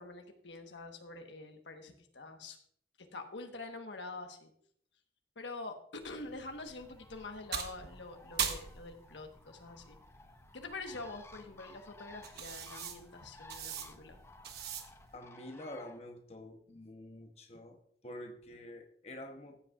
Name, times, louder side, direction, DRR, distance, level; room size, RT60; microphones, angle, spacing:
voice 1, 0.0-2.6 3.1-4.5 5.4-10.0 10.5-14.2, left 3 dB, 85° left, 5 dB, 1.3 m, -46 dB
sound 1, 6.0-15.2, right 7 dB, 60° right, 1.1 m, -43 dB
Bird, 6.8-16.0, left 2 dB, 15° left, 0.5 m, -57 dB
voice 2, 15.1-17.8 18.0-19.6, left 1 dB, 35° left, 4 dB, 0.9 m, -47 dB
15.5 x 8.1 x 2.5 m, 0.64 s
head